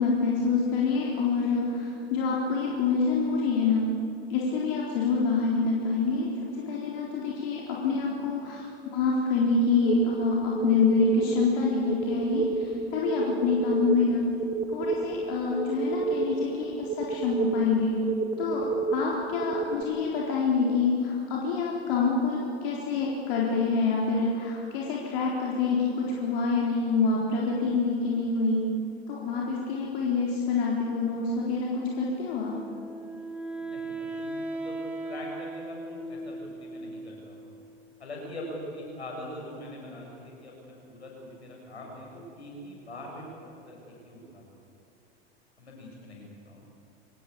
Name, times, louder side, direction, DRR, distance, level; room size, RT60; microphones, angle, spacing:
voice 1, 0.0-3.9 4.3-14.2 14.7-18.0 18.4-28.7 29.1-32.6, left 4 dB, 60° left, -3 dB, 4.0 m, -26 dB
sound 1, 9.8-19.8, right 4 dB, 20° right, 3.1 m, -30 dB
Wind instrument woodwind instrument, 32.4-37.5, right 2 dB, 5° right, 3.6 m, -37 dB
voice 2, 33.6-34.8 35.0-37.5 38.0-44.6 45.6-46.6, left 1 dB, 85° left, -1 dB, 7.7 m, -43 dB
24.5 x 19.0 x 8.6 m, 2.8 s
figure-of-eight pair, 80°, 32 cm